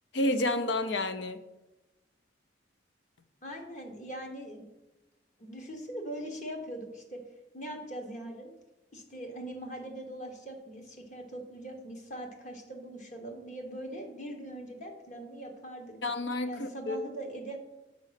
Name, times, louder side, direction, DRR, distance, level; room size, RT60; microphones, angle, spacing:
voice 1, 0.1-1.5 16.0-17.0, left 2 dB, 80° left, 0.7 m, -30 dB
voice 2, 3.4-4.7 5.4-7.2 7.5-8.5 8.9-16.0 16.5-17.6, right 1 dB, 40° left, 1.3 m, -41 dB
6.2 x 5.1 x 5.8 m
head